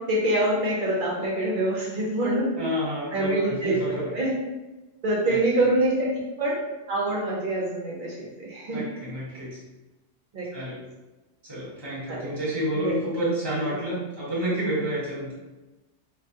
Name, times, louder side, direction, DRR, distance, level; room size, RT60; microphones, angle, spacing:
voice 1, 0.1-2.5 3.1-4.3 5.0-6.6 6.9-8.8 10.3-10.7 12.1-12.3 12.7-12.9, right 1 dB, 50° right, -5 dB, 0.7 m, -25 dB
voice 2, 2.6-4.1 5.3-5.4 8.7-9.6 10.5-10.8 11.4-15.3, equal, 20° right, -9 dB, 1.2 m, -29 dB
2.6 x 2.2 x 2.7 m, 1.1 s
omnidirectional pair, 1.3 m